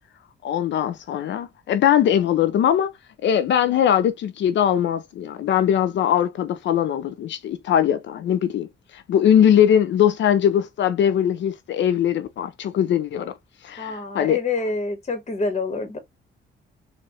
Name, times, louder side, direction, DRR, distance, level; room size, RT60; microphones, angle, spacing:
voice 1, 0.4-2.9 3.2-8.7 8.9-13.3 13.6-14.4, left 9 dB, 65° left, 0.6 m, -21 dB
voice 2, 13.8-16.0, left 3 dB, 35° left, 1.5 m, -26 dB
4.1 x 2.6 x 3.0 m
cardioid pair, 90°, 20 cm